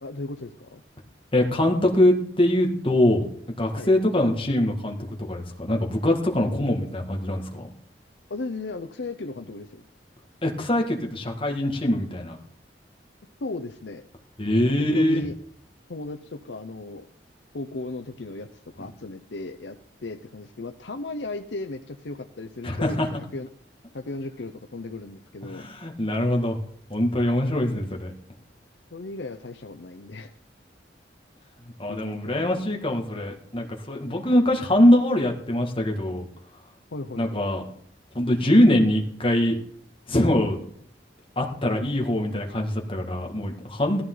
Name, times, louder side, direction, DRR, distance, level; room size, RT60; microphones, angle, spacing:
voice 1, 0.0-0.8 3.7-3.9 8.3-9.8 13.4-14.0 14.6-15.3 15.9-17.1 17.5-18.5 18.8-19.8 20.0-23.5 23.9-25.7 27.5-27.6 28.9-30.3 31.9-32.6 36.9-37.4, left 2 dB, 75° left, 7 dB, 0.7 m, -36 dB
voice 2, 1.3-3.2 3.6-7.7 10.4-12.4 14.4-15.2 22.6-23.1 25.4-26.6 26.9-28.1 31.8-36.2 37.2-37.6 38.1-39.5 40.1-40.7 41.4-44.0, left 1 dB, 30° left, 1 dB, 2.1 m, -23 dB
17.0 x 14.0 x 3.9 m, 0.64 s
head